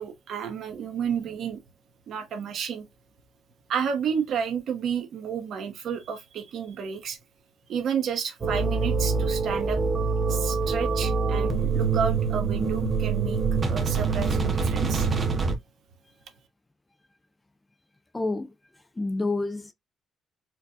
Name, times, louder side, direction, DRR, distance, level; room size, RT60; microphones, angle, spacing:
voice 1, 0.0-1.6 2.1-2.9 3.7-7.2 7.7-9.8 10.3-13.4 13.7-15.1, right 7 dB, 65° right, 1.0 m, -31 dB
sound 1, 8.4-15.5, right 4 dB, 30° right, 0.7 m, -25 dB
voice 2, 18.1-18.5 19.0-19.7, left 2 dB, 15° left, 0.4 m, -28 dB
4.4 x 2.2 x 2.7 m
cardioid pair, 160°, 0 cm